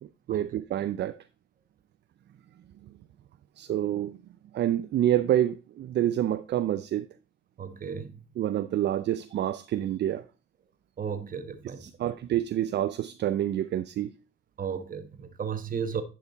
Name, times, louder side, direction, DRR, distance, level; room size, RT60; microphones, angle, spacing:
voice 1, 0.0-1.2 2.8-2.9 3.6-4.2 4.5-7.1 8.4-10.3 11.8-14.1, right 12 dB, 60° right, 0.5 m, -28 dB
voice 2, 7.6-8.2 11.0-11.9 14.6-16.0, right 7 dB, 45° right, 1.2 m, -34 dB
10.5 x 4.7 x 4.0 m
cardioid pair, 90°, 20 cm